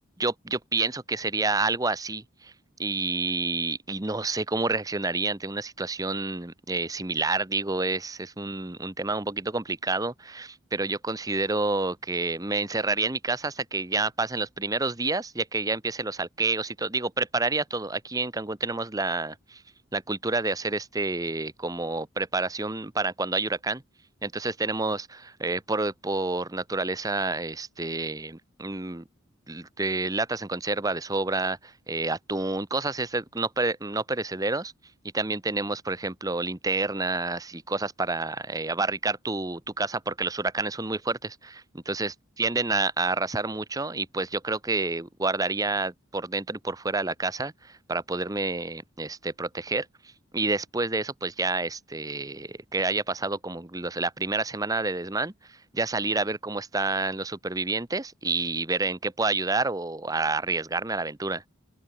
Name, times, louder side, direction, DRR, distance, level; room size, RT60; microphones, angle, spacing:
voice 1, 0.2-2.5 2.8-19.6 19.9-23.8 24.2-29.0 29.5-34.7 35.1-49.9 50.3-55.3 55.7-61.5, right 3 dB, 15° right, 1.0 m, -29 dB
open air
head